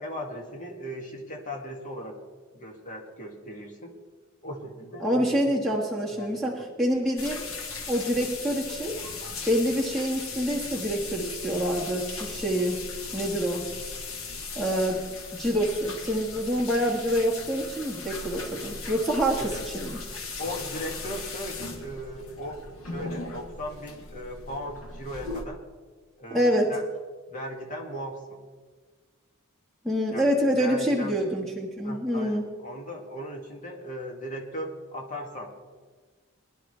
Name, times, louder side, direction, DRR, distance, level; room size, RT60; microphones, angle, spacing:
voice 1, 0.0-2.2 2.5-3.9 4.4-5.6 6.1-6.7 19.4-19.7 20.4-25.6 26.2-26.8 27.3-28.4 30.1-30.2 30.5-31.2 31.8-35.6, equal, 40° left, 1 dB, 2.2 m, -38 dB
voice 2, 5.0-7.4 7.9-9.0 9.5-12.8 13.1-13.6 14.6-15.0 15.3-19.4 19.7-20.0 26.3-26.7 29.8-32.5, equal, ahead, -2 dB, 1.6 m, -26 dB
sound 1, 7.2-25.4, left 3 dB, 80° left, 1.7 m, -38 dB
21.5 x 11.0 x 3.3 m, 1.4 s
head